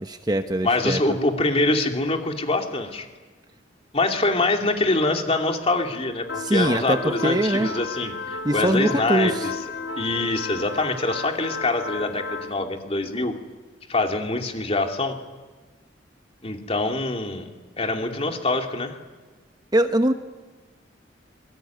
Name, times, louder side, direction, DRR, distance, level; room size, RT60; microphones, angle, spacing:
voice 1, 0.0-1.0 6.4-7.7 8.4-9.5 19.7-20.1, right 1 dB, 20° right, 8 dB, 1.0 m, -22 dB
voice 2, 0.6-3.1 3.9-9.5 10.0-13.3 13.9-15.2 16.4-17.5 17.8-18.9, left 2 dB, 35° left, 4 dB, 2.9 m, -24 dB
sound 1, 6.3-12.5, left 4 dB, 70° left, 1.7 m, -33 dB
25.5 x 23.0 x 9.4 m, 1.3 s
head